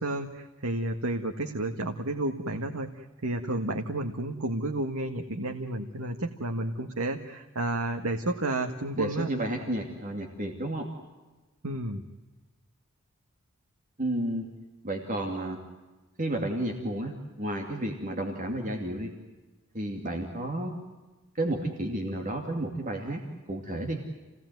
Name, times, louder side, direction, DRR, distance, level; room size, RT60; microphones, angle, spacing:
voice 1, 0.0-9.3 11.6-12.0, right 2 dB, 85° right, 4 dB, 1.6 m, -31 dB
voice 2, 9.0-10.9 14.0-14.5 14.8-15.6 16.2-19.1 19.7-20.7 21.4-23.2 23.5-24.0, right 1 dB, 40° right, 2 dB, 2.6 m, -31 dB
28.5 x 18.0 x 9.3 m, 1.2 s
head